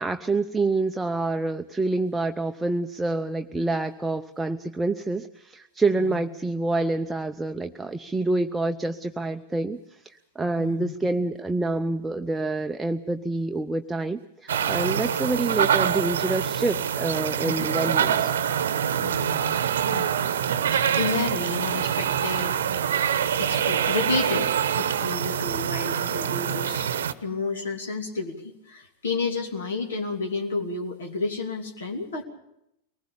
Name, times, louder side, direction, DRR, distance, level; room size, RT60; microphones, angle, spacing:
voice 1, 0.0-18.3, right 2 dB, 10° right, 6 dB, 0.7 m, -27 dB
voice 2, 10.6-10.9 19.0-20.1 20.4-22.6 23.3-24.5 24.7-26.9 27.2-32.2, left 4 dB, 65° left, 3 dB, 2.8 m, -31 dB
sound 1, 14.5-27.1, right 9 dB, 65° right, 1.0 m, -25 dB
23.0 x 19.5 x 7.0 m, 0.82 s
figure-of-eight pair, 90°, 0 cm